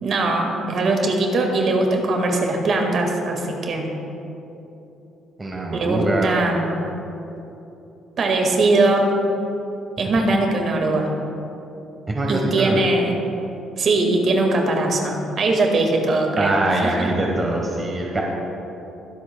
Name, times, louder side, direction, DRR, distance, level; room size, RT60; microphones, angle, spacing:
voice 1, 0.0-3.9 5.7-6.8 8.2-9.1 10.0-11.1 12.3-13.2 13.8-17.1, right 2 dB, 50° right, 1 dB, 1.7 m, -21 dB
voice 2, 5.4-6.4 12.1-12.8 16.4-18.2, right 2 dB, 25° right, -1 dB, 1.2 m, -23 dB
22.0 x 8.0 x 2.2 m, 2.9 s
cardioid pair, 110°, 0 cm